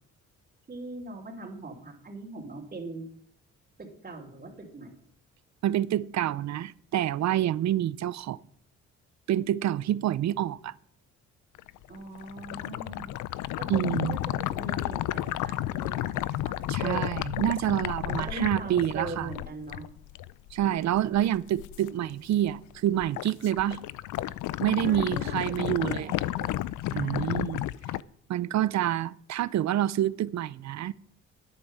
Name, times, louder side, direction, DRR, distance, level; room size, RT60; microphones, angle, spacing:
voice 1, 0.7-3.1 3.8-4.9 11.9-13.1 13.6-17.1 18.1-19.8 24.8-26.5 26.8-27.6, right 2 dB, 30° right, 3.2 m, -41 dB
voice 2, 5.6-8.4 9.3-10.7 13.7-14.2 16.7-19.3 20.5-23.8 24.6-26.1 26.9-27.7 28.3-30.9, right 12 dB, 65° right, 0.7 m, -27 dB
sound 1, 11.5-21.9 22.2-22.7 23.0-28.0, left 14 dB, 80° left, 0.5 m, -32 dB
11.5 x 8.9 x 7.5 m
cardioid pair, 90°, 30 cm